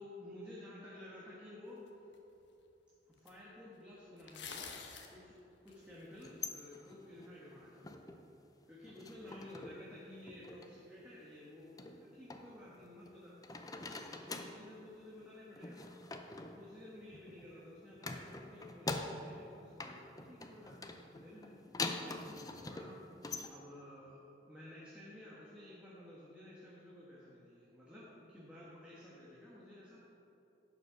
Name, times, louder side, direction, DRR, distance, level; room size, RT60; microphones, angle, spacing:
voice 1, 0.0-2.2 3.1-4.8 5.1-5.4 5.6-8.1 8.7-15.9 16.4-23.0 23.4-30.0, left 1 dB, 5° right, -8 dB, 1.3 m, -53 dB
sound 1, 2.1-2.2 3.3-3.4 4.2-5.1 5.7-6.3, left 5 dB, 85° left, 1.0 m, -47 dB
sound 2, 6.1-8.3 8.6-9.9 10.1-10.7 11.8-13.1 13.4-14.7 15.6-17.5 18.0-19.5 19.8-23.5, left 3 dB, 20° left, 0.5 m, -44 dB
10.5 x 5.5 x 6.0 m, 2.9 s
head